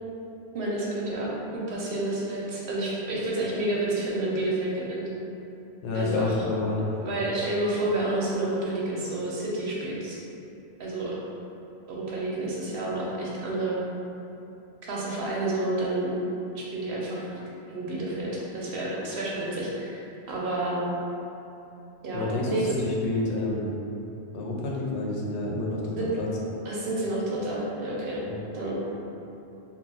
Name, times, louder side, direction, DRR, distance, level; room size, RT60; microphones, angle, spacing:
voice 1, 0.5-5.1 5.9-6.4 7.0-10.2 10.8-11.2 11.9-13.8 14.9-16.2 16.5-17.3 17.7-20.8 22.0-22.7 25.9-26.1 26.6-28.2 28.5-28.8, right 2 dB, 60° right, -5 dB, 0.8 m, -29 dB
voice 2, 5.8-6.9 22.1-22.5 22.8-23.8 24.3-26.3 28.2-28.4, left 2 dB, 85° left, -3 dB, 0.9 m, -29 dB
2.3 x 2.2 x 3.9 m, 2.9 s
omnidirectional pair, 1.1 m